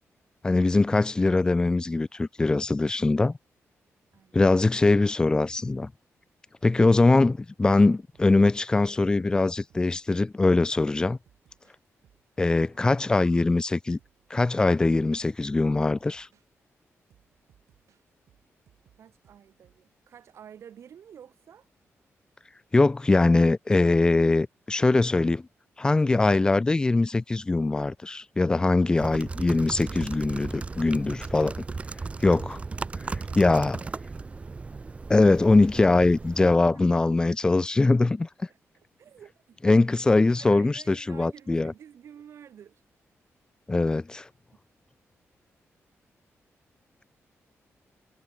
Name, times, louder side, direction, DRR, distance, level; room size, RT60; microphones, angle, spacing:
voice 1, 0.4-3.4 4.3-5.9 6.6-11.2 12.4-14.0 14.3-16.3 22.7-25.4 25.8-31.5 32.2-32.6 33.4-33.8 35.1-38.3 39.6-41.7 43.7-44.3, left 3 dB, 15° left, 0.4 m, -22 dB
voice 2, 4.1-4.4 12.6-12.9 19.0-21.7 30.0-30.1 32.7-34.4 36.4-37.3 38.5-42.8, right 8 dB, 65° right, 4.8 m, -51 dB
sound 1, 8.1-10.3 10.9-13.4 13.8-16.5 17.1-19.9, right 10 dB, 90° right, 4.9 m, -64 dB
sound 2, 29.0-36.5, right 4 dB, 25° right, 1.6 m, -36 dB
wide cardioid pair, 155°, 5 cm